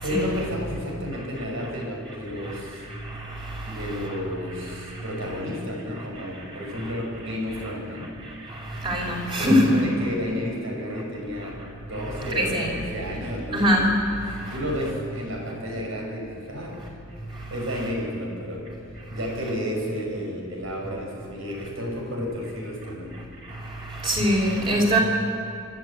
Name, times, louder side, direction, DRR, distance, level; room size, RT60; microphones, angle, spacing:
voice 1, 0.0-2.8 3.6-8.1 9.4-11.6 11.9-13.9 14.3-16.7 17.5-18.7 19.1-23.1, equal, 75° right, 0 dB, 5.6 m, -32 dB
voice 2, 8.8-9.8 12.3-12.7 13.5-13.9 24.0-25.0, equal, 25° right, -2 dB, 4.6 m, -21 dB
25.5 x 12.5 x 8.4 m, 2.5 s
head